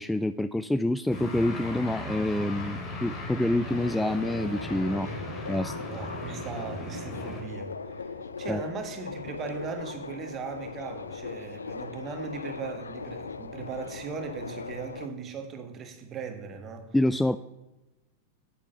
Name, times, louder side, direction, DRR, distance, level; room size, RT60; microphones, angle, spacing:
voice 1, 0.0-5.1 5.5-5.8 8.5-8.6 16.9-17.4, left 1 dB, 5° left, 0.3 m, -27 dB
sound 1, 1.1-7.4, left 1 dB, 30° left, 2.9 m, -37 dB
Subway metro underground, 3.7-15.1, left 4 dB, 75° left, 0.7 m, -39 dB
voice 2, 5.9-8.1 8.4-16.9, right 5 dB, 30° right, 1.7 m, -38 dB
9.2 x 9.1 x 5.5 m
figure-of-eight pair, 90°, 0 cm